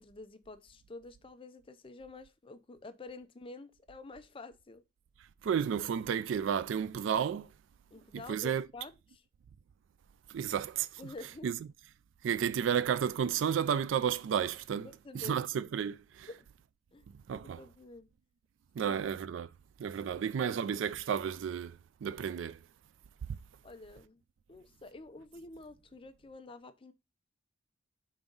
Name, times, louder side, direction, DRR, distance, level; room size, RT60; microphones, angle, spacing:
voice 1, 0.0-4.8 7.9-9.2 11.0-11.5 14.8-15.4 16.3-16.5 16.9-17.1 17.4-18.1 18.8-19.0 23.6-24.2 24.5-26.9, left 2 dB, 30° left, 0.5 m, -49 dB
voice 2, 5.4-7.5 8.1-8.7 10.3-11.0 11.4-11.6 12.2-14.9 15.1-16.3 17.3-17.6 18.7-19.5 19.8-22.6 23.3-23.4, right 8 dB, 70° right, 0.3 m, -32 dB
5.3 x 3.5 x 5.3 m
head